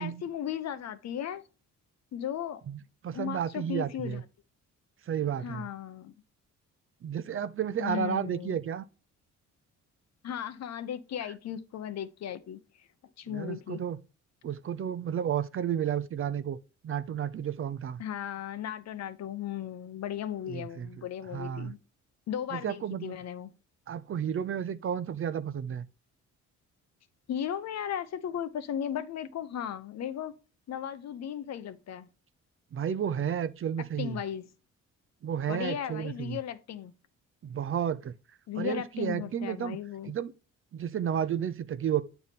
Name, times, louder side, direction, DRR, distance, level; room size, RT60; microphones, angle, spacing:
voice 1, 0.0-1.4 2.1-2.6 3.1-4.2 5.4-6.1 7.8-8.6 10.2-12.6 13.2-13.8 18.0-21.8 22.3-23.5 27.3-30.3 30.7-32.1 34.0-34.4 35.5-36.9 38.5-40.1, left 9 dB, 60° left, 0.8 m, -36 dB
voice 2, 2.7-4.2 5.1-5.7 7.0-8.8 13.3-14.0 14.4-16.6 16.8-18.0 20.5-21.1 21.3-21.7 22.5-23.2 23.9-25.9 32.7-34.2 35.2-36.4 37.4-38.1 38.6-39.8 40.1-40.3 40.7-42.0, right 9 dB, 45° right, 0.6 m, -32 dB
8.6 x 3.5 x 4.1 m
cardioid pair, 90°, 30 cm